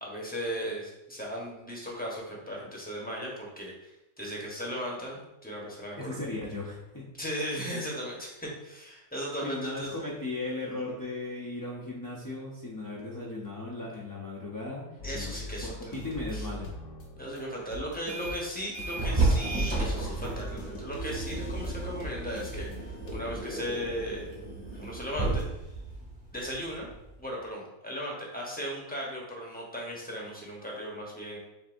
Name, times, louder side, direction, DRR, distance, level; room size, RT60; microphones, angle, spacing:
voice 1, 0.0-3.9 4.2-6.2 7.2-10.1 15.0-15.9 16.3-16.5 17.2-24.3 24.8-25.4 26.3-26.9 27.2-31.4, equal, 10° left, -3 dB, 0.9 m, -37 dB
voice 2, 6.0-7.1 9.4-16.7, left 2 dB, 25° left, -5 dB, 0.5 m, -37 dB
sound 1, 15.0-23.4, left 1 dB, 70° left, 1.2 m, -42 dB
sound 2, 17.9-18.4 18.7-27.2, right 2 dB, 35° right, 1.2 m, -32 dB
7.2 x 2.7 x 2.5 m, 0.91 s
omnidirectional pair, 1.4 m